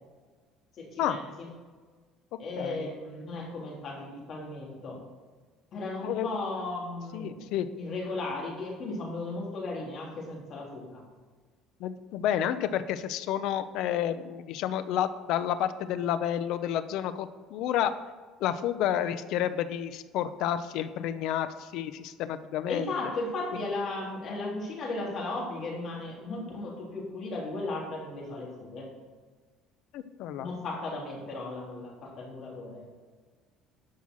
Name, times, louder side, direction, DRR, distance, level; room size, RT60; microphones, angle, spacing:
voice 1, 0.7-1.5 2.4-5.0 5.7-7.5 7.7-11.0 22.7-28.9 30.4-32.8, left 2 dB, 40° left, -2 dB, 3.4 m, -36 dB
voice 2, 2.6-2.9 6.0-6.3 7.1-7.7 11.8-17.9 18.4-22.9 29.9-30.5, left 10 dB, 65° left, 12 dB, 0.7 m, -30 dB
11.5 x 5.7 x 6.3 m, 1.4 s
cardioid pair, 150°, 0 cm